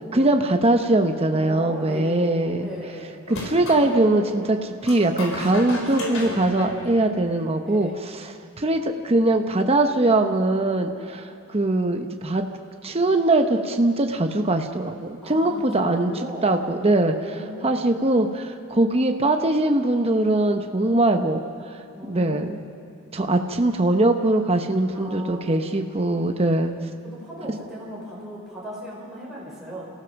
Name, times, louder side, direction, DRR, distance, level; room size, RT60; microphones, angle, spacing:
voice 1, 0.1-2.7 3.3-4.6 4.8-12.5 12.8-16.1 16.4-17.1 17.6-21.4 22.1-22.6 23.1-26.7, right 2 dB, 30° right, 5 dB, 0.9 m, -21 dB
voice 2, 1.4-2.3 2.6-3.1 3.7-4.5 5.6-7.0 7.7-8.0 15.2-17.7 21.9-22.5 24.9-25.7 27.0-29.9, equal, ahead, -7 dB, 4.9 m, -37 dB
sound 1, 3.3-3.8 4.8-7.5, left 2 dB, 70° left, 4.0 m, -35 dB
28.5 x 15.5 x 6.0 m, 2.5 s
head